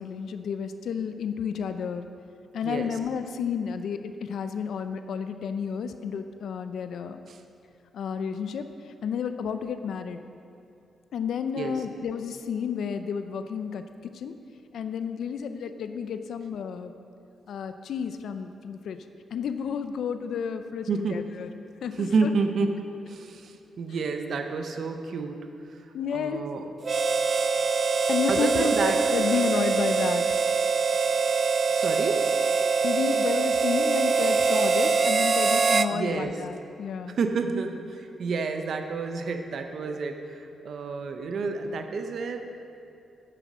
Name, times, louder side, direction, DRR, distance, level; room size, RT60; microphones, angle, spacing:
voice 1, 0.0-2.1 2.5-7.2 7.9-8.7 9.0-10.2 11.1-14.3 14.7-16.9 17.5-19.0 19.3-21.5 21.8-22.3 25.9-26.4 28.1-30.2 32.8-37.2, left 7 dB, 75° left, 9 dB, 0.5 m, -31 dB
voice 2, 2.6-3.0 7.3-7.4 11.5-11.8 20.9-21.2 21.9-25.8 26.1-26.7 28.3-29.0 31.7-32.3 35.9-36.4 37.1-42.4, right 4 dB, 65° right, 6 dB, 0.8 m, -30 dB
Harmonica, 26.8-35.9, right 5 dB, 45° right, 0.4 m, -23 dB
9.6 x 9.1 x 6.2 m, 2.6 s
cardioid pair, 100°, 0 cm